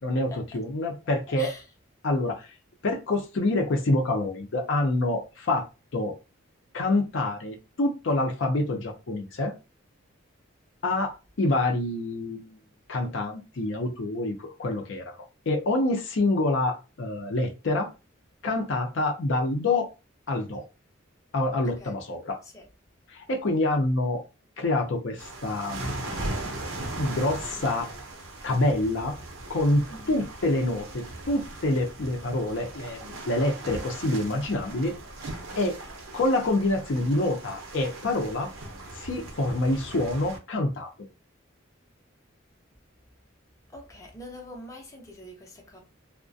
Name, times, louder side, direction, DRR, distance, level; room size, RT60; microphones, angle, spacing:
voice 1, 0.0-1.5 2.0-2.5 2.8-5.7 5.9-6.1 6.7-9.5 10.8-12.6 12.9-15.2 15.5-17.9 18.4-19.9 20.3-20.6 21.3-22.4 23.1-24.2 24.6-25.8 27.0-27.9 28.4-29.2 29.5-35.0 35.6-35.8 36.1-38.5 38.9-40.9, left 2 dB, 65° left, 0.5 m, -26 dB
voice 2, 21.6-21.9 22.4-22.6 29.9-30.2 43.7-45.8, left 1 dB, 15° left, 0.6 m, -44 dB
sound 1, 25.2-40.4, right 2 dB, 80° right, 0.6 m, -38 dB
2.3 x 2.0 x 2.5 m
head